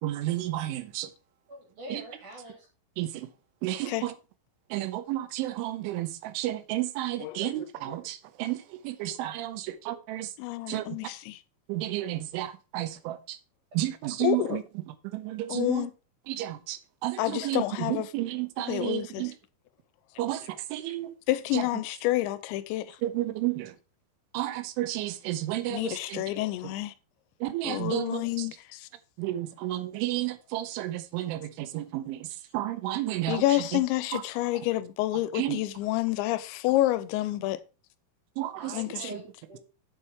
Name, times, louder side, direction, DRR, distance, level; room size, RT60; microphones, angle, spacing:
voice 1, 0.0-1.1 1.9-2.0 3.0-3.3 3.6-4.1 4.7-10.3 10.7-11.0 11.7-13.4 13.7-15.9 16.3-19.3 20.2-21.1 21.5-21.7 23.0-23.8 24.3-26.3 26.6-26.7 27.4-28.5 29.2-33.8 34.1-34.2 34.5-34.6 35.3-35.6 38.4-38.7 39.0-39.2, right 15 dB, 85° right, 3.3 m, -32 dB
voice 2, 1.5-2.7 38.6-39.6, equal, 45° right, 3.6 m, -44 dB
voice 3, 7.2-7.5 9.1-9.2 10.4-11.4 14.2-14.6 15.5-15.9 17.2-18.1 18.7-19.2 21.3-23.0 25.7-26.9 27.6-28.9 33.3-37.6 38.7-39.1, left 16 dB, 80° left, 2.8 m, -29 dB
8.6 x 7.6 x 4.5 m
omnidirectional pair, 5.5 m